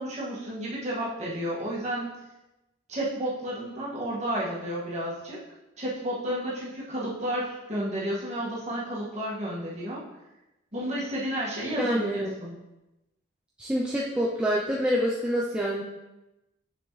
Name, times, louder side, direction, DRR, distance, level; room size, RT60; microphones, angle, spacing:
voice 1, 0.0-2.1 2.9-5.4 5.8-10.0 10.7-12.6, right 1 dB, 35° right, -6 dB, 2.0 m, -31 dB
voice 2, 11.8-12.3 13.6-15.8, equal, 5° right, -5 dB, 0.6 m, -26 dB
7.0 x 6.3 x 3.3 m, 0.97 s
head